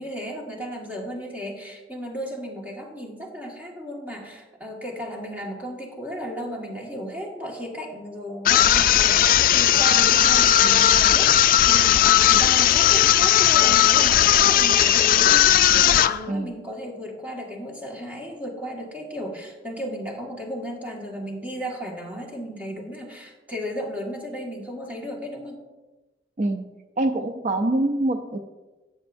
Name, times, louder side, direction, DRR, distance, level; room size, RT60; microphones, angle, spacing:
voice 1, 0.0-25.6, equal, 10° right, -1 dB, 1.7 m, -34 dB
sound 1, 8.4-16.2, left 11 dB, 50° left, 0.3 m, -17 dB
voice 2, 26.4-26.7 27.0-28.4, right 2 dB, 45° right, 5 dB, 0.5 m, -24 dB
13.0 x 8.4 x 2.6 m, 1.1 s
head